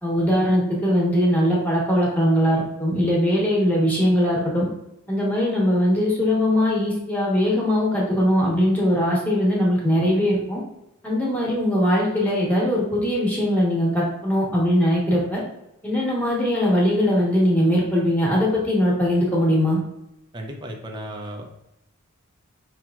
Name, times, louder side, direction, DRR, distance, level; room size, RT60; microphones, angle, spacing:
voice 1, 0.0-4.7 5.1-10.6 11.0-15.4 15.8-19.8, equal, 5° left, -4 dB, 1.1 m, -20 dB
voice 2, 20.3-21.5, right 1 dB, 20° right, 2 dB, 0.5 m, -34 dB
5.4 x 2.9 x 2.4 m, 0.86 s
head